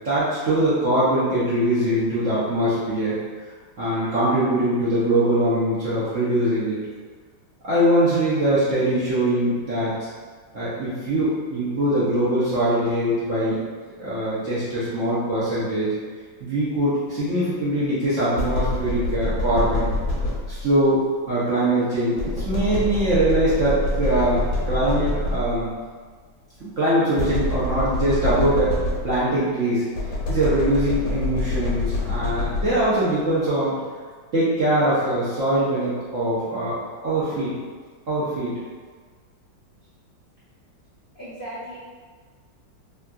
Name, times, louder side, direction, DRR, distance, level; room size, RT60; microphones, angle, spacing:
voice 1, 0.0-3.2 3.8-6.8 7.6-9.9 10.5-13.6 14.0-15.9 16.4-19.9 20.5-21.0 21.3-24.4 24.7-25.7 26.6-28.7 29.0-29.8 30.3-33.7 34.3-36.8 37.0-37.5 38.1-38.5, right 1 dB, 60° right, -11 dB, 0.8 m, -22 dB
sound 1, 18.4-20.8 22.2-25.7 27.2-29.4 29.9-33.0, left 2 dB, 90° left, 1.5 m, -26 dB
voice 2, 41.1-41.8, equal, 65° left, -13 dB, 0.5 m, -36 dB
3.4 x 2.6 x 2.2 m, 1.6 s
omnidirectional pair, 2.1 m